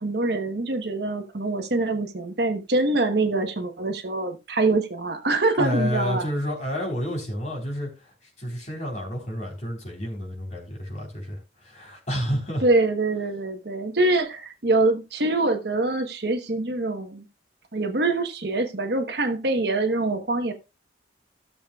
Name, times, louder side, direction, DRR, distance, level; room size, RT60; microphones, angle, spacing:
voice 1, 0.0-6.2 12.6-17.2 17.7-20.5, right 2 dB, 60° right, 1.1 m, -24 dB
voice 2, 5.6-12.6, equal, 40° left, 3.6 m, -30 dB
16.0 x 6.8 x 2.3 m
head